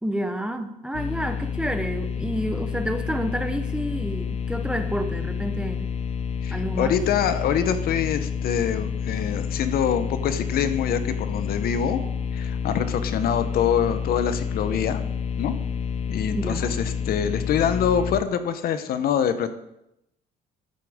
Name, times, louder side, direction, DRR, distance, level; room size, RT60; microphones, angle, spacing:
voice 1, 0.0-5.9 6.5-7.0 16.3-16.8, right 1 dB, 5° right, 7 dB, 0.9 m, -29 dB
sound 1, 0.9-18.2, left 6 dB, 40° left, 0.6 m, -29 dB
voice 2, 6.4-12.0 12.3-15.0 15.4-15.5 16.1-19.5, left 8 dB, 65° left, 10 dB, 0.9 m, -25 dB
11.5 x 8.5 x 3.6 m, 0.83 s
cardioid pair, 110°, 17 cm